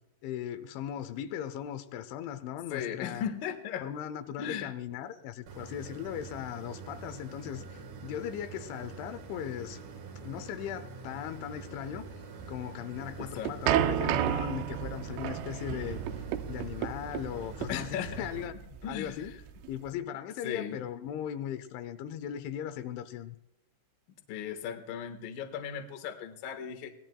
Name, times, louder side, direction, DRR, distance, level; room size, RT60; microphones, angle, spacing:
voice 1, 0.2-3.3 3.8-9.8 10.2-12.1 12.5-16.0 16.5-19.3 19.7-23.4, left 10 dB, 85° left, 11 dB, 3.1 m, -38 dB
voice 2, 2.7-3.9 4.4-4.7 13.2-13.8 17.7-18.3 18.8-19.2 20.4-20.8 24.3-26.9, left 9 dB, 65° left, 6 dB, 2.5 m, -37 dB
sound 1, 5.5-18.5, right 4 dB, 60° right, 2.3 m, -45 dB
sound 2, 13.0-19.9, right 10 dB, 80° right, 2.7 m, -32 dB
24.0 x 18.0 x 2.2 m, 0.86 s
omnidirectional pair, 5.4 m